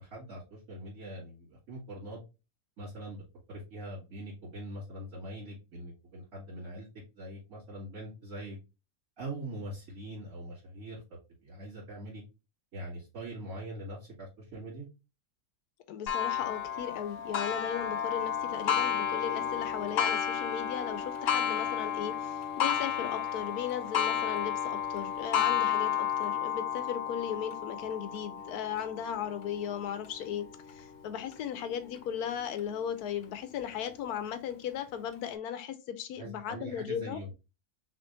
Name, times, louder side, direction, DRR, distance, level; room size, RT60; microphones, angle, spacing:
voice 1, 0.0-2.2 2.8-3.2 3.5-6.9 7.2-8.6 9.2-12.2 12.7-14.9 36.2-37.3, right 1 dB, 60° right, 2.7 m, -42 dB
voice 2, 15.9-37.2, left 9 dB, 85° left, 1.2 m, -37 dB
Clock, 16.1-31.4 32.0-32.1 32.6-32.7 33.7-33.8, left 9 dB, 65° left, 0.9 m, -32 dB
6.0 x 2.9 x 2.6 m
omnidirectional pair, 1.6 m